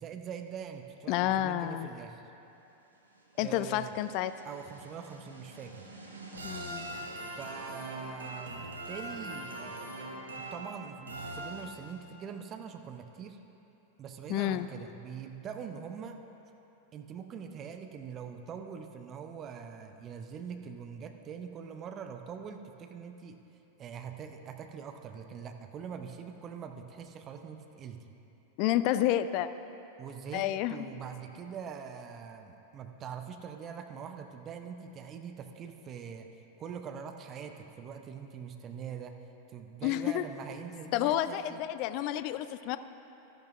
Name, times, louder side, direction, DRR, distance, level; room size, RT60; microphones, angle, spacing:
voice 1, 0.0-2.2 3.3-4.0 4.4-5.9 7.4-9.8 10.4-13.4 14.0-16.2 16.9-23.4 23.8-28.0 30.0-36.3 36.6-39.2 39.5-41.7, right 7 dB, 30° right, 6 dB, 0.6 m, -43 dB
voice 2, 1.1-1.9 3.4-4.3 6.4-6.9 14.3-14.7 28.6-29.5 30.3-30.7 39.8-40.2 40.9-42.8, left 13 dB, 45° left, 13 dB, 0.3 m, -30 dB
sound 1, 3.2-12.1, right 1 dB, 75° right, 1.0 m, -43 dB
13.5 x 11.5 x 2.5 m, 3.0 s
figure-of-eight pair, 90°, 0 cm